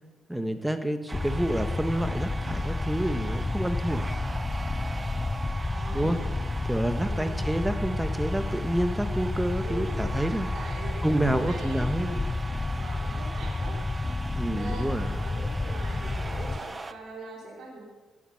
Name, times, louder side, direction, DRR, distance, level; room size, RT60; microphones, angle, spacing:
voice 1, 0.3-4.1 5.9-6.2 6.7-10.5 11.0-12.2 14.3-15.1, right 1 dB, 5° right, 8 dB, 1.4 m, -28 dB
sound 1, 1.1-16.6, left 2 dB, 20° left, 0.7 m, -31 dB
sound 2, 1.1-16.9, right 3 dB, 25° right, 0.9 m, -40 dB
voice 2, 5.6-6.4 7.0-7.5 9.6-10.0 10.5-12.2 12.8-13.8 14.5-17.9, right 3 dB, 65° right, -3 dB, 4.5 m, -42 dB
17.5 x 11.0 x 5.8 m, 1.4 s
cardioid pair, 90°, 0 cm